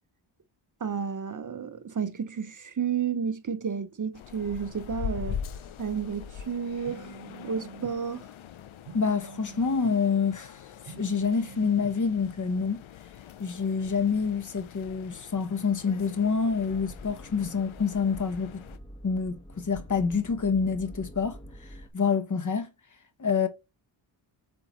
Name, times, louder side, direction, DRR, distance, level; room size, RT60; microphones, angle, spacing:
voice 1, 0.8-5.4 5.8-7.1 7.4-8.2, right 7 dB, 40° right, 0.6 m, -31 dB
sound 1, 4.1-18.8, left 8 dB, 75° left, 0.6 m, -42 dB
sound 2, 6.9-7.9 8.9-10.0 10.9-12.0, right 7 dB, 85° right, 1.2 m, -46 dB
voice 2, 8.9-12.8 13.4-18.6 19.0-21.4 21.9-22.7 23.2-23.5, left 5 dB, 40° left, 0.9 m, -27 dB
sound 3, 16.5-21.9, equal, 10° left, 1.1 m, -46 dB
7.9 x 3.9 x 3.0 m
wide cardioid pair, 105°, 49 cm